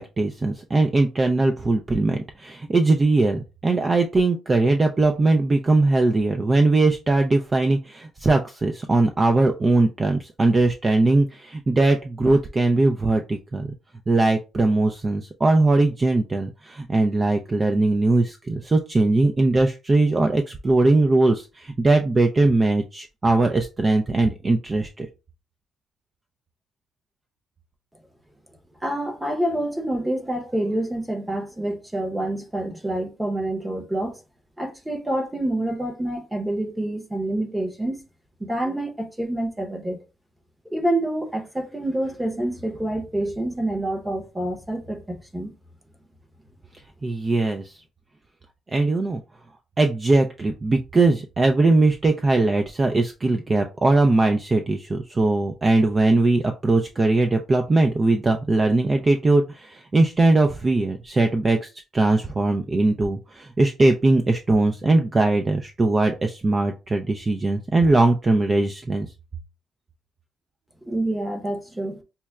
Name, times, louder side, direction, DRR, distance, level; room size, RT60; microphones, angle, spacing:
voice 1, 0.0-13.7 14.1-25.1 47.0-47.8 48.7-49.2 49.8-69.1, right 2 dB, 30° right, 0.4 m, -20 dB
voice 2, 28.8-34.2 34.6-38.0 38.4-40.0 40.7-45.5 70.8-72.0, right 1 dB, 10° right, 0.9 m, -27 dB
5.5 x 2.1 x 2.3 m
cardioid pair, 90°, 0 cm